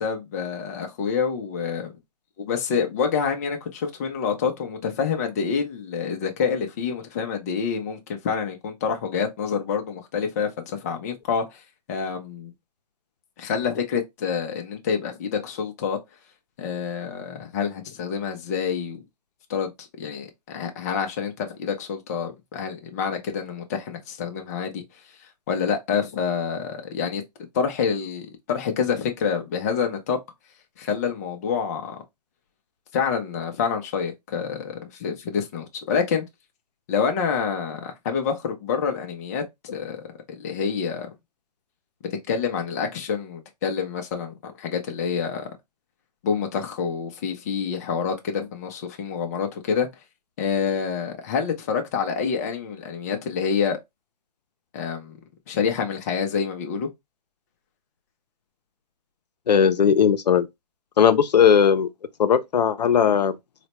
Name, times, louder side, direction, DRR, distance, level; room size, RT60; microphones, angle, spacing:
voice 1, 0.0-1.9 2.4-11.6 11.9-12.5 13.4-16.0 16.6-19.0 19.5-24.8 25.5-27.2 27.5-30.2 30.8-32.0 32.9-36.2 36.9-41.1 42.3-45.5 46.2-49.9 50.4-53.8 54.7-55.2 55.5-56.9, left 6 dB, 25° left, 0.5 m, -27 dB
voice 2, 59.5-60.5 61.0-61.9 62.2-63.4, left 7 dB, 80° left, 0.6 m, -18 dB
4.1 x 2.1 x 2.9 m
hypercardioid pair, 160°, 21 cm